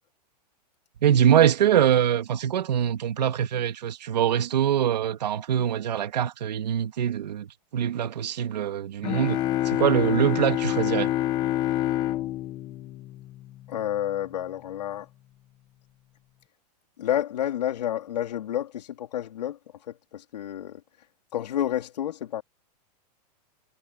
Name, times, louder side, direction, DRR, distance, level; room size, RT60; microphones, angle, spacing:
voice 1, 1.0-7.5 7.7-9.4 9.6-11.1, right 9 dB, 90° right, 2.7 m, -23 dB
sound 1, 9.0-13.7, left 13 dB, 20° left, 1.2 m, -27 dB
voice 2, 13.7-15.1 17.0-19.6 19.9-20.8 21.3-22.4, left 11 dB, 80° left, 4.0 m, -30 dB
supercardioid pair, 180°, 21 cm